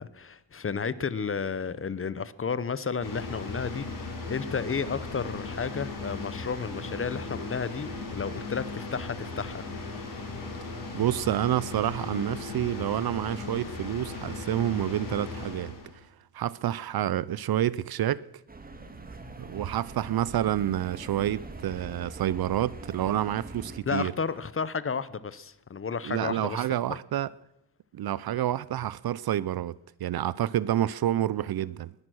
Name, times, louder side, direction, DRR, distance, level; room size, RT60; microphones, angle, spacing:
voice 1, 0.0-9.6 23.9-26.6, left 5 dB, 30° left, 0.7 m, -32 dB
sound 1, 3.0-16.0, left 3 dB, 45° left, 5.1 m, -37 dB
voice 2, 10.9-15.7 16.3-18.2 19.4-24.1 26.0-27.3 27.9-29.7 30.0-31.9, right 12 dB, 55° right, 0.5 m, -28 dB
sound 2, 18.5-23.8, right 2 dB, 20° right, 1.7 m, -43 dB
21.0 x 11.0 x 6.3 m
cardioid pair, 115°, 45 cm